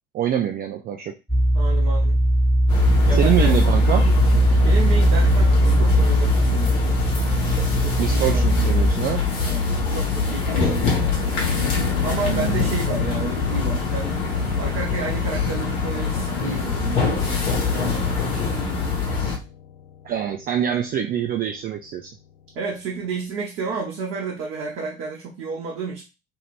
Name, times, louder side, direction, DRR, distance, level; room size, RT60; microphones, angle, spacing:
voice 1, 0.1-1.1 3.1-4.0 8.0-9.2 12.2-12.7 20.0-22.1, right 10 dB, 30° right, 3 dB, 0.4 m, -25 dB
sound 1, 1.3-8.9, right 1 dB, ahead, 0.7 m, -19 dB
voice 2, 1.5-2.2 3.1-3.6 4.6-6.9 7.7-8.6 9.4-11.4 12.0-14.2 14.6-18.3 22.5-26.0, right 4 dB, 55° right, -2 dB, 0.8 m, -31 dB
sound 2, 2.7-19.4, left 4 dB, 60° left, 1.1 m, -24 dB
sound 3, 11.4-23.0 23.3-23.4, left 8 dB, 80° left, 0.5 m, -35 dB
2.8 x 2.4 x 3.2 m, 0.27 s
figure-of-eight pair, 55°, 29 cm